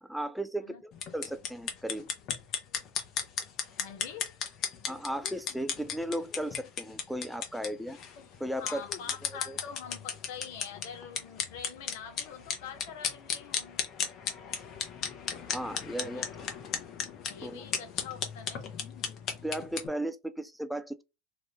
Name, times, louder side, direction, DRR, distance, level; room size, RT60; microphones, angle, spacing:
voice 1, 0.0-2.1 4.9-8.0 8.4-8.8 9.3-9.6 15.5-16.3 17.4-17.6 19.4-21.0, right 1 dB, ahead, 0.3 m, -36 dB
sound 1, 0.9-19.9, left 7 dB, 45° left, 0.9 m, -36 dB
voice 2, 3.8-4.4 8.5-13.8 16.1-16.2 17.3-18.7, left 8 dB, 70° left, 1.0 m, -45 dB
3.0 x 2.5 x 3.2 m
hypercardioid pair, 90°, 0 cm